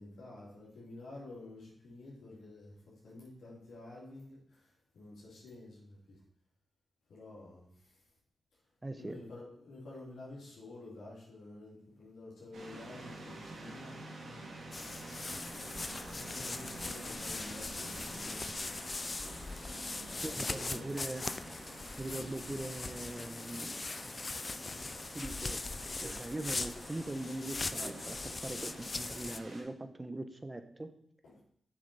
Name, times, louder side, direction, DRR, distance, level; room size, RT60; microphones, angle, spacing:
voice 1, 0.0-6.2 7.1-8.0 9.0-13.9 16.1-18.8 20.0-20.9 31.2-31.4, left 2 dB, 90° left, -6 dB, 2.8 m, -50 dB
voice 2, 8.8-9.2 20.2-21.2 22.0-23.8 25.1-25.7 26.0-30.9, right 2 dB, 25° right, 8 dB, 1.1 m, -41 dB
sound 1, 12.5-29.6, right 2 dB, 85° right, 2.0 m, -49 dB
sound 2, 14.7-29.4, left 3 dB, 45° left, 0.6 m, -40 dB
7.4 x 6.5 x 4.3 m, 0.65 s
supercardioid pair, 45°, 0 cm